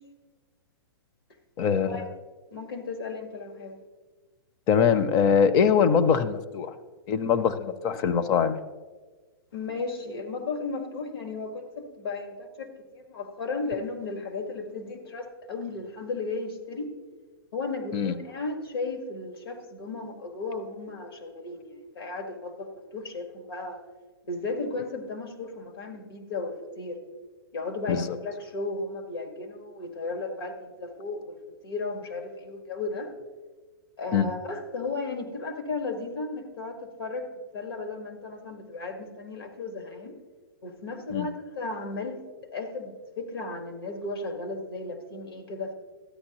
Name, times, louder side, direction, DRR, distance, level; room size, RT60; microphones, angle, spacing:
voice 1, 1.6-2.1 4.7-6.7 7.1-8.6 17.9-18.1 27.9-28.2 34.1-34.3 41.1-41.3, left 7 dB, 30° left, 12 dB, 0.6 m, -23 dB
voice 2, 2.5-3.8 9.5-16.9 17.5-23.8 24.3-27.0 27.5-31.4 31.6-33.1 34.0-37.3 37.5-40.2 40.6-42.2 42.5-45.7, left 3 dB, 80° left, 4 dB, 1.7 m, -35 dB
13.0 x 9.3 x 3.0 m, 1.4 s
hypercardioid pair, 135°, 12 cm